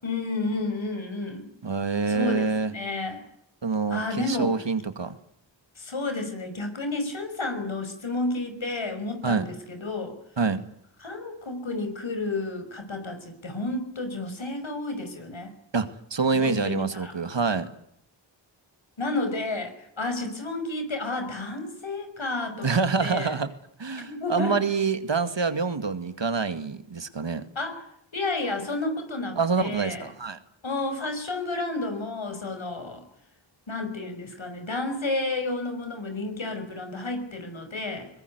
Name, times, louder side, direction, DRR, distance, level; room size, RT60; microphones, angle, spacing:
voice 1, 0.0-1.5 2.1-3.2 3.9-4.6 5.8-10.2 11.0-15.5 16.4-17.2 19.0-23.4 24.1-24.6 27.6-27.8 28.1-30.1 30.6-33.0 33.7-38.1, left 2 dB, 90° left, 7 dB, 5.8 m, -31 dB
voice 2, 1.6-2.7 3.6-5.2 9.2-9.5 10.4-10.6 15.7-17.7 22.6-23.5 23.8-27.5 29.4-30.4, right 4 dB, 70° right, 10 dB, 2.3 m, -26 dB
22.0 x 21.0 x 9.6 m, 0.73 s
wide cardioid pair, 55°, 45 cm